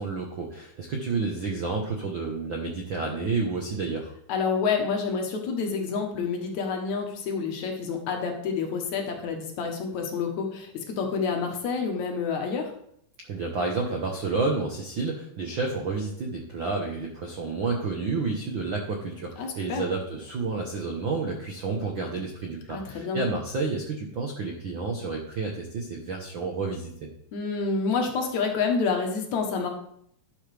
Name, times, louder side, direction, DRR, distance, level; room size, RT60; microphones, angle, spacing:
voice 1, 0.0-4.1 13.3-26.9, right 3 dB, 70° right, 1 dB, 1.2 m, -30 dB
voice 2, 4.3-12.7 19.4-19.8 22.7-23.2 27.3-29.7, left 5 dB, 65° left, 3 dB, 2.4 m, -28 dB
12.0 x 6.9 x 3.4 m, 0.70 s
omnidirectional pair, 3.7 m